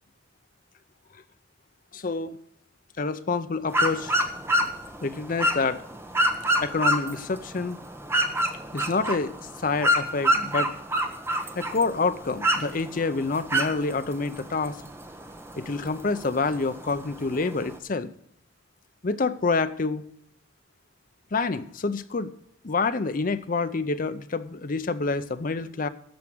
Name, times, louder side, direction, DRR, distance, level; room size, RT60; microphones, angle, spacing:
voice 1, 1.9-2.4 3.0-4.1 5.0-5.8 6.6-7.8 8.7-9.3 9.6-10.7 11.6-14.8 15.6-18.1 19.0-20.0 21.3-22.3 22.6-25.9, left 3 dB, 40° left, 11 dB, 0.5 m, -27 dB
sound 1, 3.7-17.8, equal, 10° right, 0.8 m, -28 dB
13.0 x 4.8 x 7.7 m, 0.71 s
head